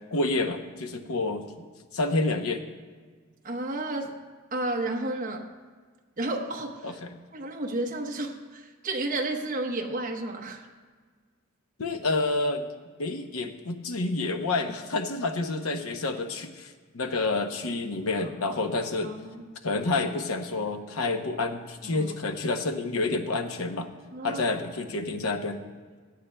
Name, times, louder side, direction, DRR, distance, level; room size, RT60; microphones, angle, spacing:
voice 1, 0.1-1.4 1.9-2.6 6.8-7.1 11.8-12.7 13.0-19.1 19.6-23.9 24.2-25.6, left 3 dB, 85° left, 7 dB, 0.8 m, -29 dB
voice 2, 3.4-4.2 4.5-5.5 6.2-7.0 7.3-10.7 18.2-18.3 19.0-19.4 21.8-22.1 24.1-24.5, right 2 dB, 40° right, 3 dB, 1.0 m, -32 dB
16.5 x 12.0 x 2.2 m, 1.5 s
head